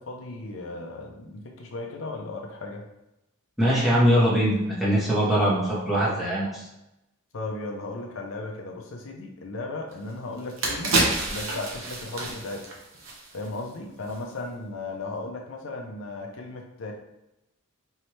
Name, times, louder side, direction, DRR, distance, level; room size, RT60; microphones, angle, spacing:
voice 1, 0.0-2.8 7.3-11.0 11.3-12.7 13.3-16.9, left 2 dB, 70° left, 1 dB, 0.6 m, -36 dB
voice 2, 3.6-6.6, equal, ahead, -8 dB, 1.2 m, -22 dB
sound 1, 9.9-10.0 10.4-13.7 14.0-14.2, right 2 dB, 65° right, 1.0 m, -28 dB
4.5 x 3.2 x 3.1 m, 0.90 s
head